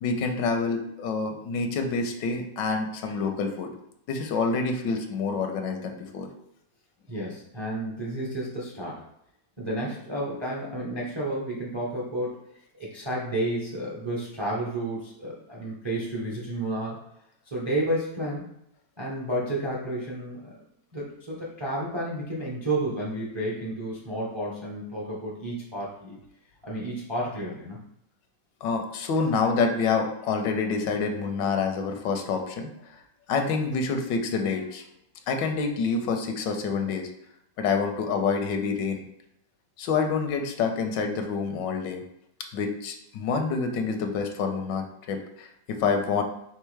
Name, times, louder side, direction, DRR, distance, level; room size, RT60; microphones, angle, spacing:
voice 1, 0.0-3.7 4.1-6.3 28.6-33.0 33.3-34.8 35.3-37.1 37.6-39.0 39.8-42.0 42.5-46.2, left 4 dB, 85° left, 4 dB, 1.3 m, -27 dB
voice 2, 7.1-9.0 9.6-12.4 12.8-17.0 17.5-18.5 19.0-20.5 20.9-26.2 26.6-27.8, right 1 dB, 35° right, -4 dB, 0.4 m, -31 dB
4.5 x 3.5 x 3.2 m, 0.77 s
omnidirectional pair, 1.9 m